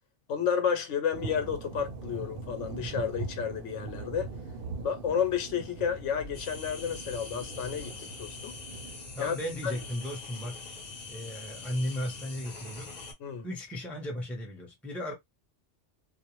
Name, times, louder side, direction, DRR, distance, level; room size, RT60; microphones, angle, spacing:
voice 1, 0.3-4.3 4.8-8.6 9.2-9.3 9.6-9.7 13.2-13.4, left 7 dB, 80° left, 1.0 m, -31 dB
sound 1, 1.1-9.9, right 3 dB, 55° right, 0.7 m, -41 dB
sound 2, 6.3-13.1, left 3 dB, 40° left, 0.7 m, -44 dB
voice 2, 9.1-10.6 11.1-12.9 13.4-15.1, left 1 dB, ahead, 0.6 m, -35 dB
2.4 x 2.1 x 3.0 m
omnidirectional pair, 1.2 m